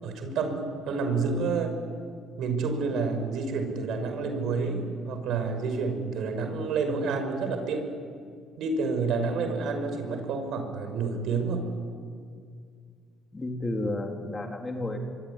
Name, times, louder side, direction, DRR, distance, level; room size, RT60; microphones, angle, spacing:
voice 1, 0.0-1.7 2.4-7.8 8.6-11.6, right 4 dB, 70° right, 6 dB, 5.8 m, -29 dB
voice 2, 13.3-15.0, left 2 dB, 20° left, 3 dB, 3.6 m, -31 dB
25.0 x 24.0 x 9.8 m, 2.1 s
cardioid pair, 100°, 0 cm